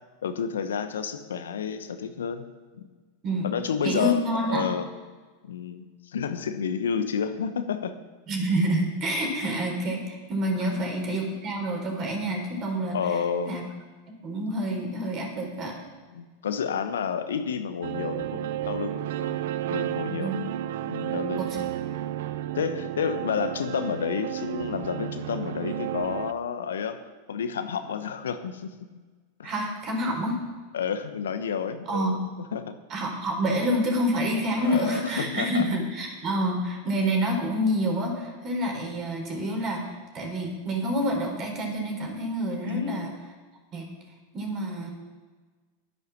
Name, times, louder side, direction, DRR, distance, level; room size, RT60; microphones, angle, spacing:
voice 1, 0.2-2.4 2.7-2.9 3.4-4.2 4.5-4.9 5.4-7.9 10.6-10.8 12.9-13.5 16.1-19.4 19.7-20.3 20.8-21.4 22.5-27.0 27.3-28.7 29.4-29.5 30.7-32.2 32.5-32.8 34.6-35.7 42.7-43.0, left 7 dB, 75° left, 10 dB, 0.9 m, -30 dB
voice 2, 3.8-4.7 8.3-13.0 13.4-13.6 14.2-15.8 20.0-20.3 21.4-21.6 29.4-30.4 31.9-32.2 32.9-43.1 43.7-43.9 44.3-44.9, equal, 35° right, 1 dB, 4.1 m, -28 dB
sound 1, 17.8-26.3, right 12 dB, 65° right, 0.5 m, -32 dB
11.0 x 9.9 x 6.0 m, 1.4 s
hypercardioid pair, 95°, 0 cm